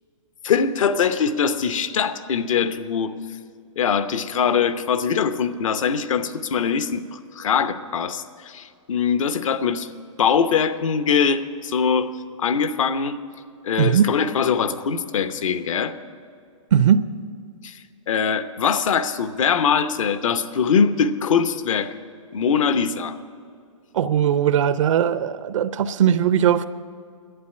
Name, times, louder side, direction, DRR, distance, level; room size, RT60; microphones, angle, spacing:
voice 1, 0.4-3.1 3.8-9.9 10.2-12.1 12.4-13.2 13.6-16.0 17.6-21.9 22.3-23.2, left 6 dB, 70° left, 0.9 m, -22 dB
voice 2, 13.8-14.1 16.7-17.1 23.9-26.7, right 9 dB, 65° right, 0.5 m, -19 dB
11.0 x 9.0 x 8.4 m
hypercardioid pair, 145°, 17 cm